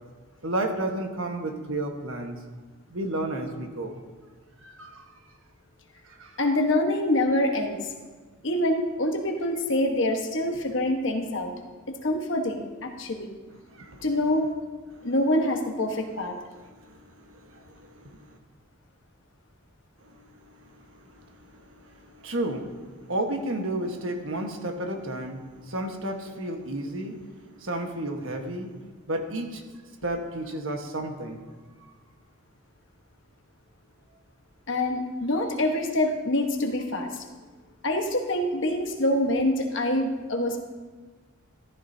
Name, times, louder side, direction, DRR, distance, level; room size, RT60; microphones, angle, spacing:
voice 1, 0.4-2.4 2.9-3.9 4.6-5.1 6.0-6.4 13.7-14.0 14.9-15.1 16.6-18.4 20.0-21.5 21.7-28.7 29.1-29.6 30.0-31.4 31.8-31.9, right 1 dB, 65° right, 4 dB, 1.4 m, -33 dB
voice 2, 6.4-7.9 8.4-11.5 12.0-13.3 14.0-14.5 15.0-16.4 34.7-37.2 37.8-40.6, left 1 dB, 55° left, 3 dB, 1.3 m, -25 dB
14.0 x 14.0 x 2.8 m, 1.4 s
head